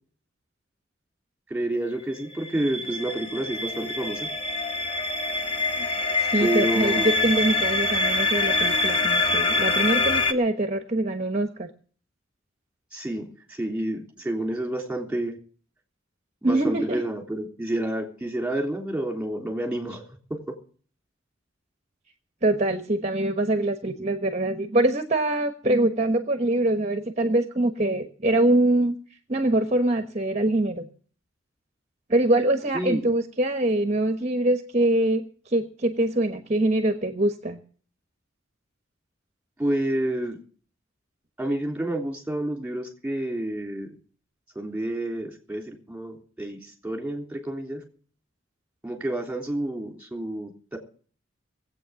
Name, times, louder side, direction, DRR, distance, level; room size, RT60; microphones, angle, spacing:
voice 1, 1.5-4.3 6.4-7.2 12.9-15.4 16.4-20.0 20.3-20.6 32.7-33.1 39.6-40.4 41.4-44.0 44.6-47.8 48.8-50.8, right 1 dB, 5° right, 3 dB, 3.4 m, -29 dB
sound 1, 2.2-10.3, left 2 dB, 30° left, 1.2 m, -25 dB
voice 2, 6.2-11.7 16.4-17.0 22.4-29.0 29.3-30.9 32.1-37.6, right 1 dB, 35° right, 7 dB, 1.2 m, -24 dB
18.5 x 8.5 x 7.1 m, 0.43 s
head